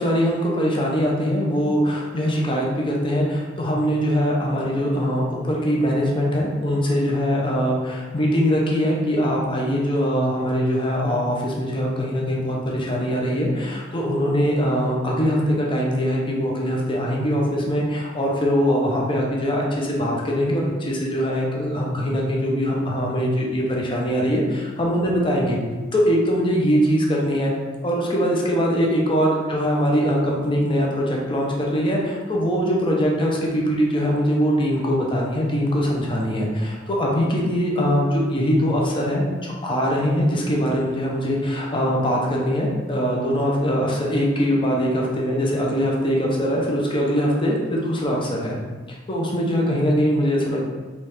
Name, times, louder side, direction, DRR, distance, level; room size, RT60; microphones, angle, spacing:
voice 1, 0.0-25.6 25.9-27.5 27.8-48.6 49.1-50.7, equal, 25° left, -2 dB, 0.8 m, -22 dB
4.1 x 3.2 x 3.5 m, 1.3 s
head